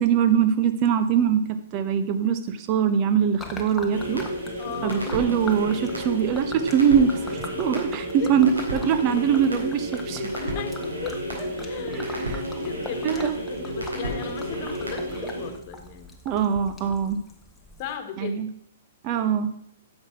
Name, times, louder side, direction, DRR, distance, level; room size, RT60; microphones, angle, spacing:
voice 1, 0.0-4.3 4.8-10.3 11.9-12.4 13.0-13.3 16.2-17.2 18.2-18.5 19.0-19.5, right 8 dB, 35° right, 10 dB, 1.1 m, -23 dB
Gurgling / Liquid, 3.4-18.0, left 2 dB, 10° left, 1.3 m, -42 dB
sound 1, 3.9-15.5, equal, 85° right, 3.9 m, -31 dB
voice 2, 4.6-5.2 8.2-8.3 10.4-16.1 17.8-18.4, left 8 dB, 40° left, 7 dB, 1.7 m, -37 dB
10.0 x 6.9 x 5.9 m, 0.67 s
figure-of-eight pair, 115°, 0 cm